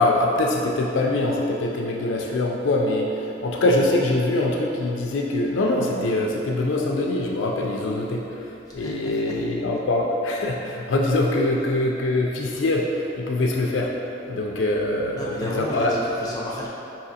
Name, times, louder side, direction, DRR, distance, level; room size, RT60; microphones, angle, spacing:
voice 1, 0.0-8.2 8.7-13.9 14.3-15.9, left 2 dB, 80° left, 0 dB, 0.4 m, -23 dB
voice 2, 8.7-9.4 15.1-16.7, left 1 dB, 20° left, -6 dB, 0.7 m, -31 dB
4.9 x 2.8 x 2.7 m, 2.8 s
head